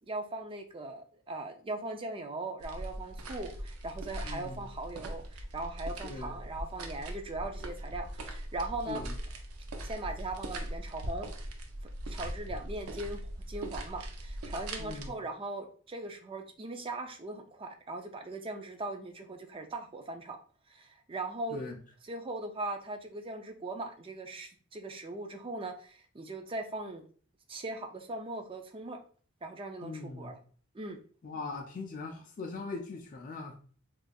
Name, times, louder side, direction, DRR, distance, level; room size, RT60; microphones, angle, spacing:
voice 1, 0.1-9.0 9.8-11.3 12.1-13.2 13.5-20.4 20.7-21.6 22.1-27.0 27.5-29.0 29.4-30.4 30.7-31.0, right 2 dB, 25° right, 0.4 m, -39 dB
sound 1, 2.6-15.1, right 1 dB, 90° right, 0.6 m, -40 dB
voice 2, 4.2-4.6 6.0-6.3 8.9-9.2 14.8-15.1 21.5-21.8 29.8-30.3 31.2-33.5, left 3 dB, 40° left, 0.4 m, -40 dB
4.3 x 2.5 x 2.3 m
head